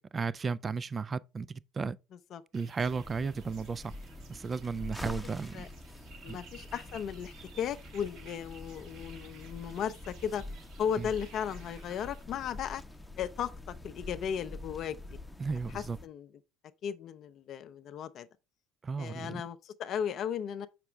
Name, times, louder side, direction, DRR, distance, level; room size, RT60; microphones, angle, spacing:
voice 1, 0.1-2.0 2.5-3.9 4.3-5.7 6.3-6.4 11.0-11.1 15.4-16.0 18.8-19.4, right 5 dB, 30° right, 0.3 m, -34 dB
sound 1, 2.5-12.3, right 5 dB, 70° right, 2.0 m, -56 dB
sound 2, 2.8-16.1, left 1 dB, 5° left, 0.7 m, -46 dB
voice 2, 6.2-10.4 10.8-12.8 13.2-15.0 15.7-16.3 16.8-18.3 19.0-20.7, left 8 dB, 55° left, 0.5 m, -36 dB
6.8 x 5.9 x 3.4 m
hypercardioid pair, 70°, 0 cm